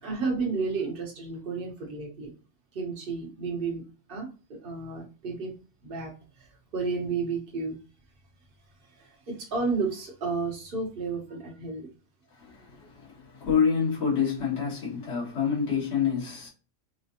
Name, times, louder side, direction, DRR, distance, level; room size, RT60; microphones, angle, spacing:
voice 1, 0.0-2.3 2.7-3.8 4.1-7.8 8.8-11.9, right 4 dB, 45° right, 1.1 m, -32 dB
voice 2, 12.3-16.5, left 6 dB, 60° left, 1.9 m, -27 dB
4.1 x 2.1 x 2.7 m
omnidirectional pair, 1.4 m